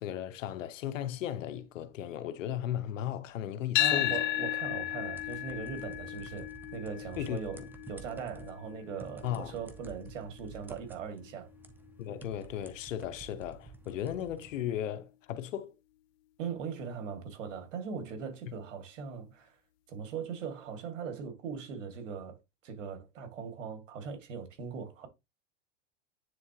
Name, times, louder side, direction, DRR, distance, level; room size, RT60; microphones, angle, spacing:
voice 1, 0.0-4.2 7.2-7.4 9.2-9.5 12.0-15.7, left 11 dB, 90° left, 1.0 m, -36 dB
sound 1, 3.8-11.9, left 14 dB, 45° left, 0.6 m, -35 dB
voice 2, 3.8-11.5 16.4-19.6 19.9-22.4 22.6-25.1, right 6 dB, 80° right, 2.2 m, -40 dB
sound 2, 4.6-14.6, right 3 dB, 5° right, 0.5 m, -52 dB
9.4 x 3.7 x 2.9 m
supercardioid pair, 140°, 37 cm